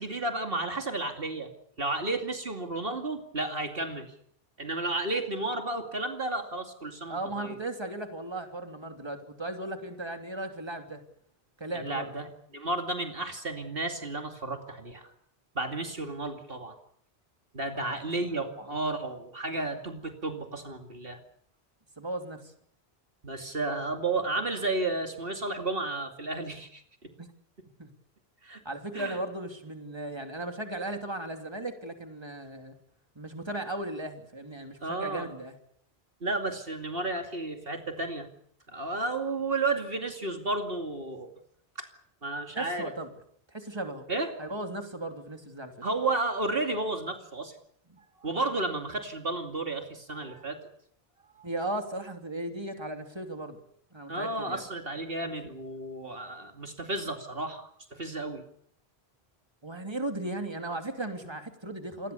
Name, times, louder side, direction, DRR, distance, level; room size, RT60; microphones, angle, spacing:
voice 1, 0.0-1.5 1.8-4.1 4.6-7.6 11.7-15.1 15.5-16.8 17.5-21.2 23.2-27.1 28.4-28.6 28.9-29.2 34.8-35.3 36.2-38.3 38.7-41.3 41.8-41.9 42.2-42.9 44.1-44.3 45.8-47.6 48.2-50.6 51.4-51.5 54.1-57.6 57.9-58.4, right 2 dB, 60° right, 5 dB, 2.7 m, -32 dB
voice 2, 7.1-11.0 11.6-12.1 17.7-17.9 18.4-18.5 22.0-22.4 27.2-27.3 27.8-27.9 28.6-32.7 33.2-35.6 42.5-43.1 43.5-44.1 44.4-45.7 47.9-48.0 51.4-53.6 53.9-54.6 55.2-55.3 59.6-62.1, right 1 dB, 25° right, 5 dB, 3.0 m, -36 dB
28.0 x 21.0 x 6.9 m, 0.65 s
omnidirectional pair, 1.1 m